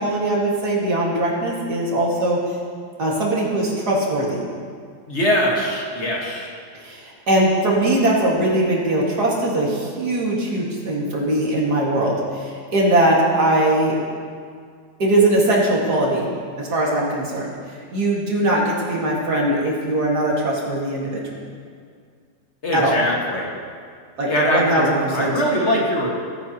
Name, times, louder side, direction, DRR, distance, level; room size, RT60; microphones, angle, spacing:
voice 1, 0.0-2.4 3.0-4.5 6.8-14.0 15.0-16.3 16.6-17.4 17.9-21.4 22.7-23.0 24.2-25.3, right 1 dB, 55° right, -4 dB, 2.5 m, -20 dB
voice 2, 5.1-6.5 22.6-23.5 24.3-26.1, equal, 35° left, -2 dB, 1.9 m, -21 dB
18.5 x 9.3 x 3.0 m, 2.1 s
omnidirectional pair, 2.2 m